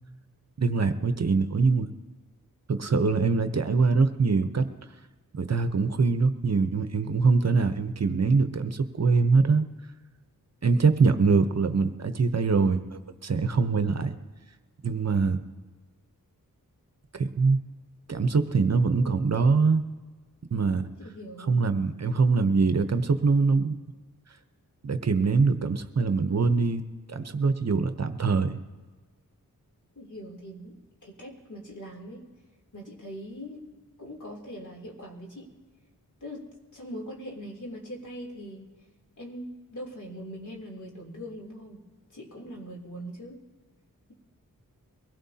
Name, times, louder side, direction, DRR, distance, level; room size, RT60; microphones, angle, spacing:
voice 1, 0.6-1.9 2.7-4.7 5.3-9.6 10.6-14.2 14.8-15.4 17.1-17.6 18.1-19.8 20.5-20.9 21.5-23.8 24.8-28.6, right 4 dB, 50° right, 9 dB, 0.8 m, -23 dB
voice 2, 10.7-11.1 19.0-19.3 21.0-21.7 29.9-32.3 32.7-33.6 34.0-35.5 36.2-36.5 36.7-38.7 39.2-41.8 42.1-43.4, equal, 60° left, -1 dB, 3.2 m, -41 dB
23.0 x 16.5 x 2.8 m, 1.3 s
cardioid pair, 60°, 35 cm